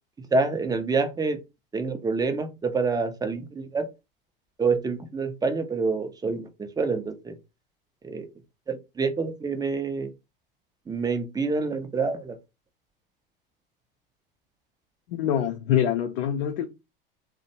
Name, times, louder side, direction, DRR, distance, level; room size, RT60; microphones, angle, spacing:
voice 1, 0.3-1.4 1.7-3.9 4.6-7.4 8.0-8.3 8.7-10.1 10.9-12.4, right 4 dB, 15° right, 0.5 m, -27 dB
voice 2, 15.1-16.6, left 10 dB, 75° left, 0.5 m, -25 dB
2.5 x 2.1 x 2.7 m
hypercardioid pair, 85°, 29 cm